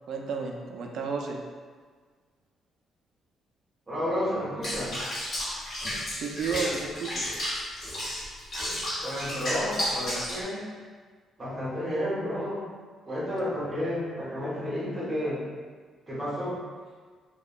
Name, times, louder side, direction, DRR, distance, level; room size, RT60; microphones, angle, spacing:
voice 1, 0.1-1.4 6.1-7.3, right 5 dB, 65° right, 1 dB, 0.3 m, -32 dB
voice 2, 3.9-5.0 9.0-10.6 11.4-12.7 13.0-15.4 16.1-16.6, equal, 20° right, -7 dB, 0.8 m, -31 dB
Water / Bathtub (filling or washing), 4.6-10.4, left 1 dB, 40° left, 0.9 m, -32 dB
2.8 x 2.0 x 2.4 m, 1.5 s
cardioid pair, 150°, 0 cm